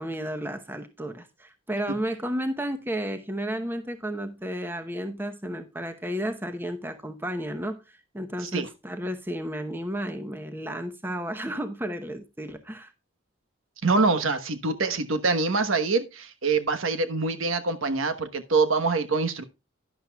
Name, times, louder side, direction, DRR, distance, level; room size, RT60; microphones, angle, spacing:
voice 1, 0.0-12.9, equal, 10° right, 0.8 m, -32 dB
voice 2, 13.8-19.4, right 3 dB, 85° right, 1.2 m, -25 dB
11.0 x 10.5 x 2.3 m
head